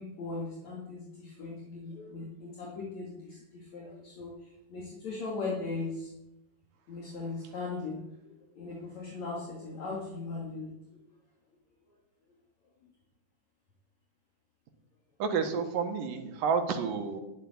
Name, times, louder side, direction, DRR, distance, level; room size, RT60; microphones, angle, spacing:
voice 1, 0.0-6.1 6.9-11.0, left 3 dB, 55° left, -4 dB, 3.5 m, -39 dB
voice 2, 15.2-17.2, right 6 dB, 70° right, 6 dB, 3.0 m, -30 dB
12.0 x 7.9 x 9.7 m, 0.89 s
omnidirectional pair, 4.0 m